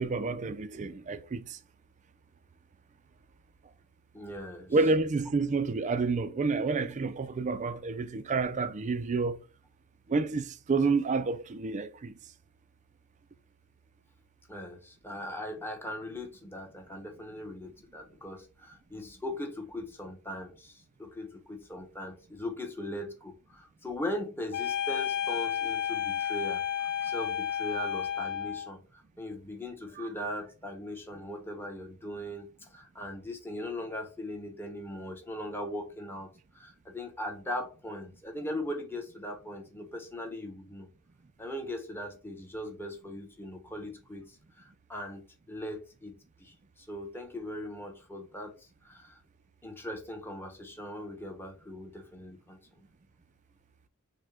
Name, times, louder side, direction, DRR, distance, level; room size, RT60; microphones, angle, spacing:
voice 1, 0.0-1.6 4.7-9.4 10.1-12.1, right 4 dB, 35° right, 0.4 m, -29 dB
voice 2, 4.1-4.8 14.5-40.9 41.4-49.2 49.6-52.9, left 1 dB, 10° left, 0.9 m, -40 dB
sound 1, 24.5-28.7, left 9 dB, 90° left, 0.5 m, -32 dB
6.3 x 2.2 x 3.4 m
head